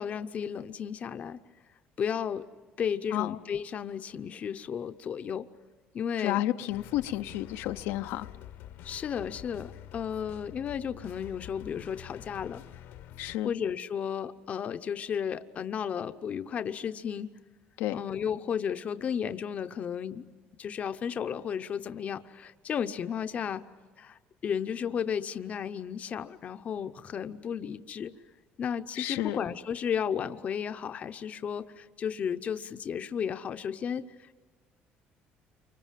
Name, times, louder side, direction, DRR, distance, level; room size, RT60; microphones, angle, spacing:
voice 1, 0.0-1.4 2.0-2.5 2.8-5.5 5.9-6.4 8.8-12.6 13.4-17.3 17.9-20.2 20.6-23.6 24.0-28.1 28.6-34.3, left 8 dB, 35° left, 10 dB, 0.7 m, -33 dB
voice 2, 6.2-8.3 13.2-13.5 17.8-18.0 29.0-29.4, left 14 dB, 90° left, 7 dB, 0.8 m, -31 dB
sound 1, 6.7-13.4, left 12 dB, 70° left, 1.1 m, -47 dB
29.0 x 25.5 x 7.5 m, 1.4 s
cardioid pair, 150°, 4 cm